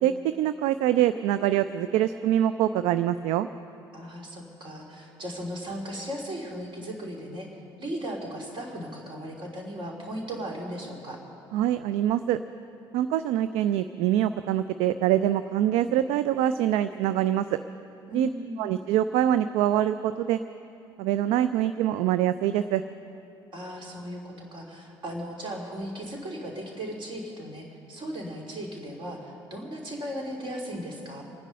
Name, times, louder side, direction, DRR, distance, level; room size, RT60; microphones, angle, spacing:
voice 1, 0.0-3.5 11.5-12.4 12.9-17.6 18.1-18.3 18.6-20.4 21.0-22.8, right 11 dB, 55° right, 12 dB, 0.4 m, -24 dB
voice 2, 3.9-11.2 18.1-18.7 23.5-31.2, equal, 40° right, 0 dB, 3.2 m, -37 dB
25.5 x 9.9 x 5.4 m, 2.7 s
figure-of-eight pair, 55°, 13 cm